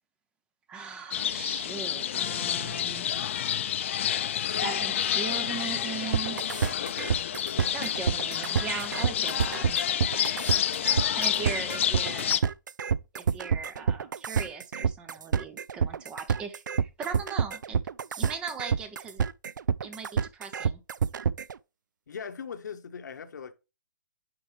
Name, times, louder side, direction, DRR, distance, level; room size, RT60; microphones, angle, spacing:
voice 1, 0.7-3.1 4.6-6.4 7.7-9.8 11.1-12.4 13.1-17.8 18.2-19.3 19.8-20.8, right 5 dB, 10° right, 0.5 m, -38 dB
sound 1, 1.1-12.4, left 10 dB, 40° left, 0.5 m, -29 dB
sound 2, 6.1-21.6, right 7 dB, 85° right, 0.4 m, -28 dB
voice 2, 6.8-8.1 22.1-23.5, left 6 dB, 70° left, 1.0 m, -41 dB
9.9 x 4.7 x 3.2 m
hypercardioid pair, 165°, 10 cm